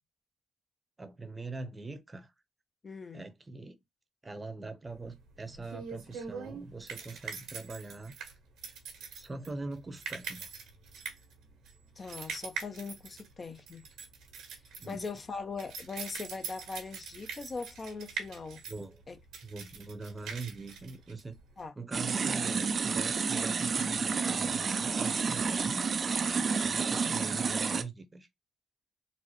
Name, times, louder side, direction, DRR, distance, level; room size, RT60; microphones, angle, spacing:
voice 1, 1.0-2.3 3.1-3.8 4.2-8.1 9.1-10.5 14.8-15.1 18.7-19.0 19.4-21.4 21.8-25.9 26.4-28.3, right 3 dB, 25° right, 0.8 m, -42 dB
voice 2, 2.8-3.3 12.0-13.9 14.8-18.6 19.1-19.2 21.6-21.7, left 4 dB, 40° left, 0.6 m, -40 dB
sound 1, 4.9-21.7, right 6 dB, 85° right, 1.3 m, -43 dB
sound 2, 21.9-27.8, right 5 dB, 45° right, 0.4 m, -30 dB
4.0 x 2.1 x 3.0 m
supercardioid pair, 70°, 0 cm